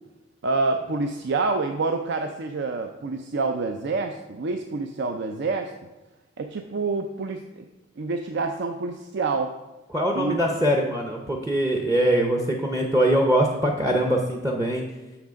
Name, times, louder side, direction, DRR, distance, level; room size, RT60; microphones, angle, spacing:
voice 1, 0.4-5.7 6.4-7.6 8.0-9.5 10.1-10.4, right 3 dB, 65° right, 6 dB, 0.5 m, -27 dB
voice 2, 9.9-14.8, right 1 dB, 15° right, 1 dB, 0.6 m, -22 dB
6.4 x 5.9 x 5.0 m, 1.0 s
head